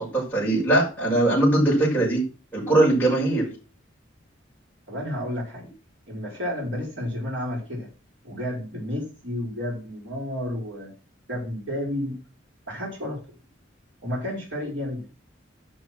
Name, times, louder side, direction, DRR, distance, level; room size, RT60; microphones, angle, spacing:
voice 1, 0.0-2.2 2.5-3.5, right 1 dB, 10° left, -6 dB, 6.2 m, -21 dB
voice 2, 4.9-5.7 6.1-7.9 8.2-10.9 11.3-12.1 12.7-13.2 14.0-15.1, left 1 dB, 65° right, -2 dB, 5.6 m, -31 dB
11.0 x 6.3 x 6.2 m, 0.33 s
head